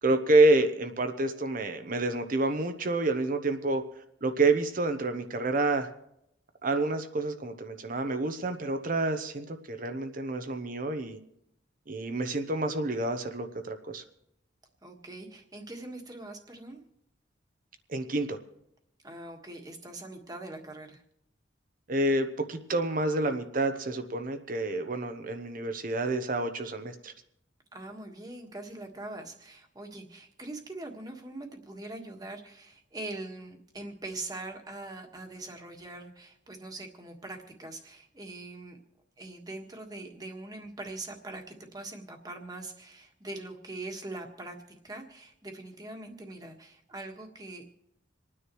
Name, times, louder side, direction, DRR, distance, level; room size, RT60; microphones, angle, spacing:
voice 1, 0.0-3.8 4.2-5.9 6.6-11.2 11.9-14.0 17.9-18.4 21.9-27.1, right 2 dB, 45° right, 7 dB, 0.8 m, -28 dB
voice 2, 14.8-16.8 19.0-21.0 27.7-38.8 39.2-47.7, right 2 dB, 20° right, 2 dB, 1.6 m, -42 dB
27.5 x 9.8 x 3.1 m, 0.78 s
head